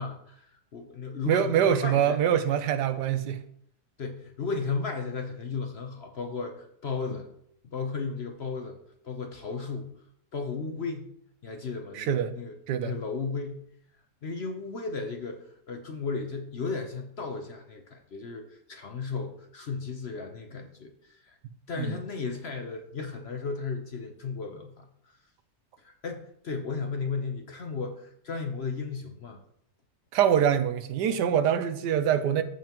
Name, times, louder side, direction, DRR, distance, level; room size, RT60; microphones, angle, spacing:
voice 1, 0.0-2.2 4.0-7.3 7.6-8.8 9.0-9.9 10.3-11.1 11.4-12.5 12.8-13.6 14.2-21.4 21.7-24.9 25.8-29.4, left 4 dB, 50° left, 0.9 m, -35 dB
voice 2, 1.3-3.4 12.0-12.3 12.7-12.9 21.8-22.0 30.1-32.4, right 9 dB, 85° right, 1.3 m, -24 dB
14.5 x 5.5 x 3.0 m
omnidirectional pair, 1.8 m